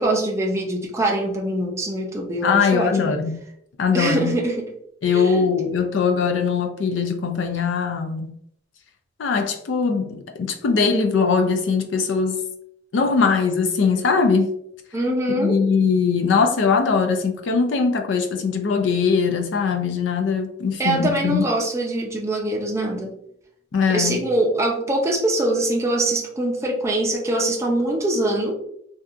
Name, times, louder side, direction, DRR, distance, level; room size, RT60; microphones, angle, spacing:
voice 1, 0.0-3.1 3.9-4.7 5.1-5.5 14.9-15.6 20.8-23.1 23.9-28.5, right 1 dB, 15° right, 0.5 m, -23 dB
voice 2, 2.4-3.3 3.8-4.3 5.0-8.3 9.2-12.4 12.9-14.5 15.3-21.4 23.7-24.2, left 5 dB, 75° left, 0.4 m, -21 dB
2.7 x 2.3 x 2.3 m
head